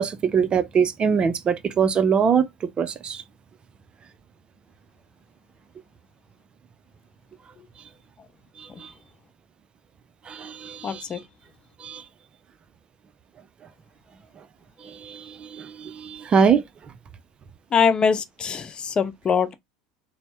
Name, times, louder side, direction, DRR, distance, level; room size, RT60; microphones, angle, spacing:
voice 1, 0.0-2.4 2.8-3.2 8.6-8.9 10.3-11.0 11.8-12.0 14.8-16.6, right 6 dB, 35° right, 0.5 m, -23 dB
voice 2, 10.8-11.2 17.7-19.5, left 6 dB, 30° left, 0.5 m, -22 dB
4.1 x 2.1 x 3.3 m
hypercardioid pair, 80°, 3 cm